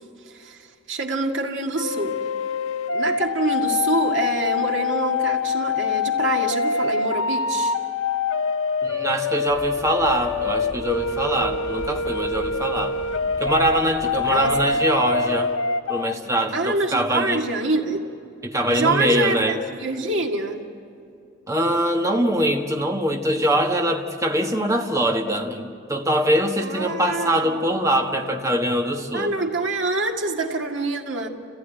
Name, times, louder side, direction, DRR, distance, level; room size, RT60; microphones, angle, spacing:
voice 1, 0.3-2.2 2.9-7.7 14.2-14.8 16.5-18.1 18.7-20.6 26.6-27.6 29.1-31.3, right 3 dB, 70° right, 2 dB, 1.9 m, -26 dB
sound 1, 1.8-16.1, left 4 dB, 85° left, 0.7 m, -25 dB
voice 2, 8.8-13.0 13.4-15.5 15.9-17.4 18.4-19.6 21.5-29.3, right 1 dB, 15° right, 2 dB, 1.4 m, -23 dB
sound 2, 9.5-14.7, equal, 5° left, 4.5 m, -40 dB
29.5 x 15.0 x 9.2 m, 2.5 s
head